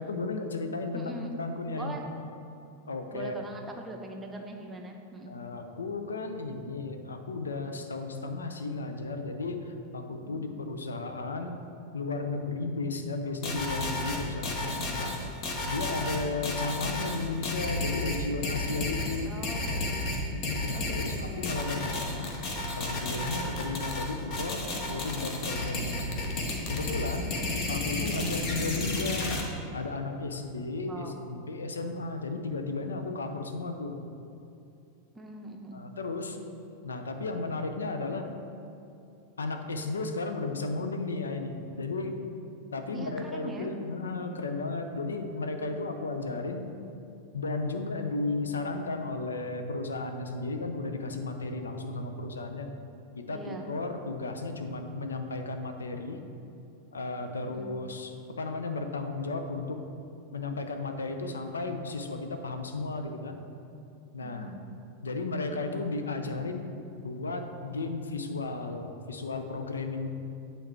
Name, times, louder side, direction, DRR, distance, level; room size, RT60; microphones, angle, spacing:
voice 1, 0.0-2.0 2.9-3.4 5.3-11.6 11.9-15.2 15.7-19.3 20.3-22.3 22.8-24.6 24.9-26.3 26.7-27.3 27.7-29.4 29.7-34.0 35.7-36.4 36.8-38.2 39.4-42.2 42.7-46.7 47.3-52.7 53.2-56.2 56.9-58.1 58.4-59.8 60.3-63.4 64.1-64.5 65.0-66.7 67.0-70.1, left 3 dB, 70° left, 6 dB, 0.5 m, -34 dB
voice 2, 0.9-1.3 1.7-2.0 3.1-5.4 10.1-10.4 19.3-19.9 20.7-21.4 27.1-27.5 30.8-31.2 35.1-35.8 42.9-43.7 53.3-53.7 57.4-57.7 64.2-64.6, right 2 dB, 15° right, 2 dB, 0.7 m, -42 dB
sound 1, 13.4-29.4, left 2 dB, 40° left, 0.9 m, -32 dB
8.5 x 3.3 x 4.4 m, 2.7 s
figure-of-eight pair, 90°, 0 cm